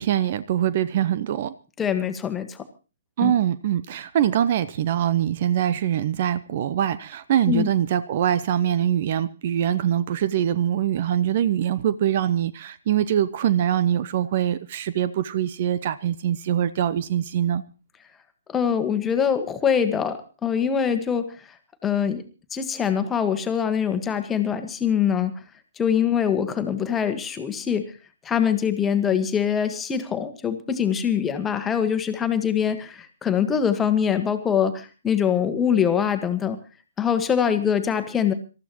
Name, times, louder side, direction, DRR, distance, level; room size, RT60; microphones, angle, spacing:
voice 1, 0.0-1.5 3.2-17.6, right 10 dB, 40° right, 0.8 m, -23 dB
voice 2, 1.8-2.6 3.2-3.3 7.5-7.7 18.5-21.3 21.8-22.2 22.5-25.3 25.8-27.9 28.2-36.6 37.0-38.3, left 8 dB, 10° left, 1.6 m, -23 dB
26.5 x 14.0 x 3.1 m
figure-of-eight pair, 130°, 0 cm